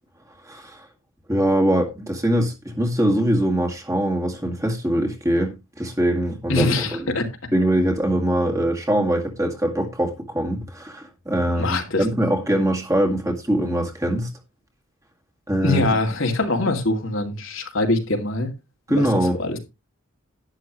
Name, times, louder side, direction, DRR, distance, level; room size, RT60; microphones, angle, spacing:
voice 1, 0.4-0.9 1.3-6.7 7.5-14.3 15.5-15.8 18.9-19.4, right 1 dB, 15° right, 2.0 m, -22 dB
voice 2, 6.5-7.3 11.6-12.0 15.6-18.5 18.9-19.1 19.4-19.6, left 2 dB, 65° left, 2.4 m, -23 dB
11.5 x 10.0 x 3.1 m
head